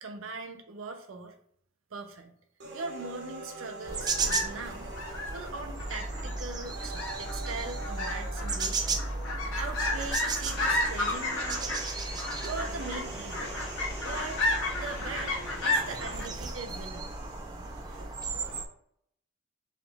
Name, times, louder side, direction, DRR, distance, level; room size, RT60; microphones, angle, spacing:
voice 1, 0.0-1.3 1.9-2.3 2.7-4.9 5.3-9.0 9.6-13.5 13.8-17.1, right 3 dB, 90° right, 4 dB, 0.6 m, -41 dB
sound 1, 2.6-18.6, right 3 dB, 60° right, 1.0 m, -46 dB
sound 2, 3.9-16.3, left 2 dB, 80° left, 1.2 m, -33 dB
sound 3, 3.9-18.7, right 3 dB, 20° right, 0.4 m, -35 dB
4.0 x 3.0 x 3.4 m, 0.66 s
head